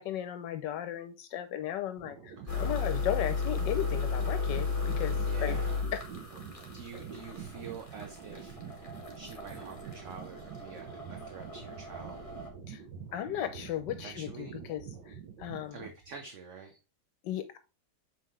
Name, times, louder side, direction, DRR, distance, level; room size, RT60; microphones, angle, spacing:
voice 1, 0.0-5.6 5.9-6.0 12.7-12.8 13.1-15.8 17.2-17.6, left 11 dB, 80° left, 9 dB, 1.3 m, -36 dB
sound 1, 2.0-16.2, right 7 dB, 75° right, 1.5 m, -46 dB
sound 2, 2.5-12.5, left 4 dB, 20° left, 1.4 m, -34 dB
voice 2, 5.2-5.8 6.7-8.8 9.1-12.2 14.0-14.6 15.7-16.8, right 5 dB, 50° right, 4 dB, 1.1 m, -47 dB
6.9 x 5.6 x 3.1 m, 0.29 s
omnidirectional pair, 1.9 m